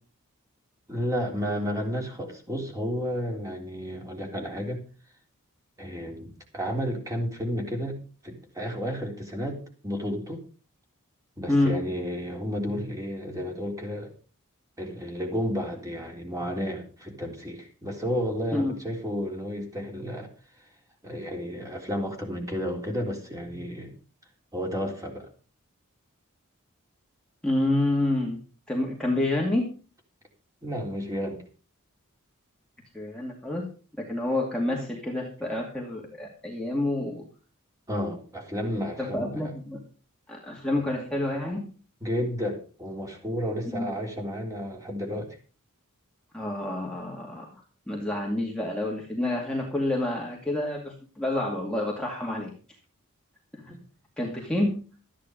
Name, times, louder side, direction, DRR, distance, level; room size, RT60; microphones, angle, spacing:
voice 1, 0.9-4.8 5.8-10.4 11.4-14.1 14.8-20.3 21.0-23.9 24.5-25.3 30.6-31.4 37.9-39.5 42.0-45.4 53.7-53.8, equal, 15° right, 1 dB, 3.6 m, -32 dB
voice 2, 27.4-28.4 28.7-29.6 32.9-33.7 34.1-37.2 39.0-39.8 40.3-41.7 43.7-43.9 46.3-47.6 47.9-52.5 53.5-53.6 54.2-54.8, left 1 dB, 5° left, -2 dB, 2.3 m, -28 dB
13.5 x 10.0 x 5.2 m, 0.37 s
head